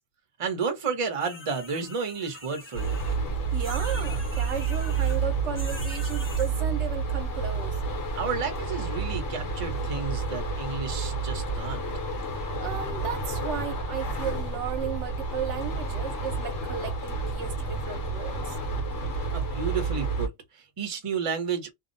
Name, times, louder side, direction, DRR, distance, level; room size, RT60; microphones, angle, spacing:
voice 1, 0.4-3.0 8.2-11.8 19.3-21.7, right 5 dB, 35° right, 0.7 m, -31 dB
sound 1, 1.2-3.2 3.6-5.2 5.6-6.5, left 2 dB, 15° left, 0.5 m, -43 dB
sound 2, 2.7-20.3, right 4 dB, 70° left, 1.1 m, -30 dB
voice 2, 3.5-7.8 12.6-18.6, right 9 dB, 75° right, 0.9 m, -35 dB
2.6 x 2.0 x 2.5 m
omnidirectional pair, 1.2 m